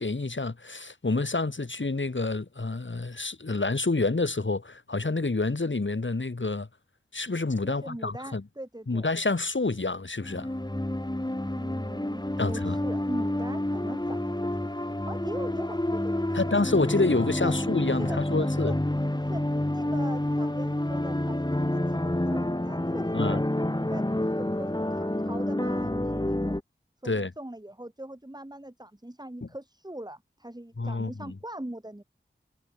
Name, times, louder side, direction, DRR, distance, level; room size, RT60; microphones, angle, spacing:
voice 1, 0.0-6.7 7.1-8.4 8.9-10.5 12.4-12.8 16.3-18.7 23.1-23.4 27.0-27.3 29.4-29.5 30.8-31.3, left 3 dB, 70° left, 6.5 m, -28 dB
voice 2, 7.6-9.0 11.5-16.5 17.4-17.5 18.0-18.8 19.3-23.4 23.8-26.6 27.0-32.0, right 1 dB, 20° right, 5.8 m, -41 dB
sound 1, 10.2-26.6, left 1 dB, 20° left, 5.6 m, -28 dB
wide cardioid pair, 60°, 20 cm